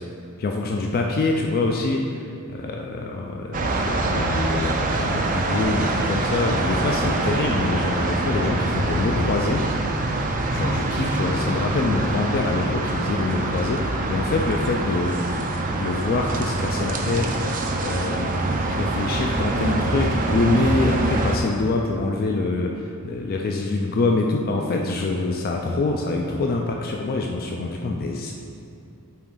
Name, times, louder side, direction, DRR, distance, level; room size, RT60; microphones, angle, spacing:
voice 1, 0.4-2.2 2.5-9.7 10.5-15.2 15.7-17.4 17.8-18.4 18.6-28.3, left 3 dB, 45° left, 1 dB, 0.4 m, -25 dB
sound 1, 3.5-21.4, right 2 dB, 40° right, 0.5 m, -25 dB
8.6 x 3.6 x 3.8 m, 2.6 s
head